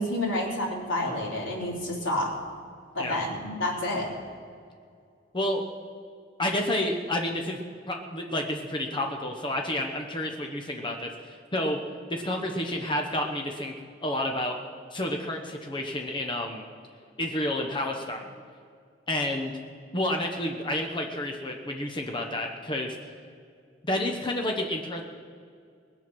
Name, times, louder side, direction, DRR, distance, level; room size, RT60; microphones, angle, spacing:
voice 1, 0.0-2.3 2.9-4.2, left 1 dB, 85° left, -2 dB, 3.3 m, -29 dB
voice 2, 6.4-7.6 7.9-11.8 12.1-13.7 14.0-14.6 14.9-16.6 17.2-18.3 19.1-19.5 19.9-23.0 23.8-25.0, left 1 dB, 25° left, 2 dB, 1.0 m, -30 dB
20.5 x 8.0 x 6.1 m, 2.3 s
head